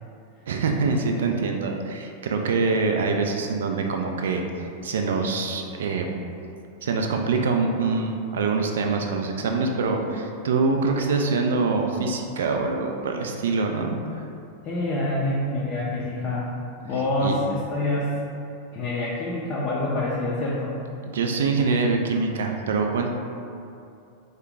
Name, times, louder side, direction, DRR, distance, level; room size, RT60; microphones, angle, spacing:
voice 1, 0.5-6.1 6.8-14.0 17.2-17.3 21.1-23.1, right 4 dB, 60° right, 3 dB, 0.3 m, -24 dB
voice 2, 14.6-16.5 16.8-18.2 18.7-20.8, left 2 dB, 35° left, -6 dB, 0.5 m, -26 dB
3.7 x 2.2 x 3.4 m, 2.6 s
figure-of-eight pair, 90°, 0 cm